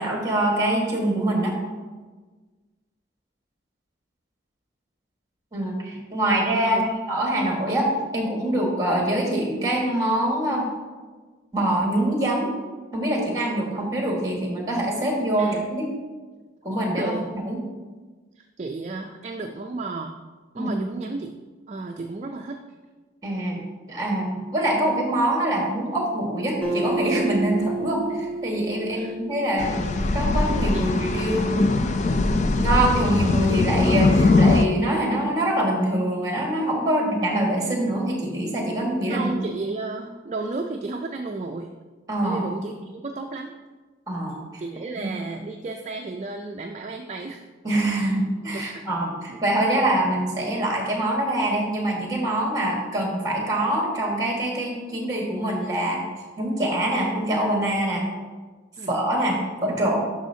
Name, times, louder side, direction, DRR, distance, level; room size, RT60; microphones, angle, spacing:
voice 1, 0.0-1.6 5.5-6.8 7.1-10.7 11.5-12.5 12.9-15.9 16.6-17.1 17.4-17.6 20.6-20.7 23.2-23.6 23.9-31.6 32.2-39.3 42.1-42.4 44.1-44.6 45.0-45.1 47.6-56.0 56.4-58.0 58.9-60.0, right 1 dB, 20° right, -1 dB, 1.6 m, -24 dB
voice 2, 15.4-15.7 16.9-17.2 18.4-20.2 20.5-21.3 21.7-22.6 28.9-29.2 30.7-30.8 39.1-41.7 42.2-43.5 44.6-47.4 47.9-48.1 48.7-48.8 49.3-49.4 58.8-59.0, right 3 dB, 35° right, 3 dB, 0.3 m, -33 dB
Acoustic guitar, 26.6-30.2, right 2 dB, 10° left, 1.3 m, -30 dB
sound 1, 29.6-34.7, left 3 dB, 40° left, 0.4 m, -21 dB
10.5 x 6.2 x 2.7 m, 1.3 s
head